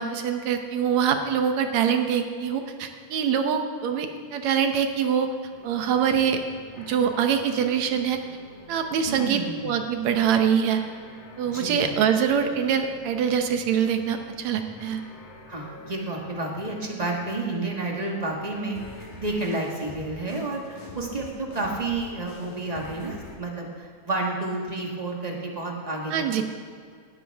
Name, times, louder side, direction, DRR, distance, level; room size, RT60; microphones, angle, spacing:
voice 1, 0.0-5.3 5.6-6.4 6.8-8.2 8.7-10.8 11.4-15.0 26.1-26.4, right 7 dB, 70° right, 6 dB, 2.1 m, -24 dB
sound 1, 5.5-23.4, left 2 dB, 80° left, 3.5 m, -46 dB
voice 2, 9.1-9.8 11.5-12.0 15.5-26.4, right 2 dB, 55° right, -1 dB, 0.4 m, -30 dB
18.0 x 13.0 x 3.5 m, 2.2 s
omnidirectional pair, 3.4 m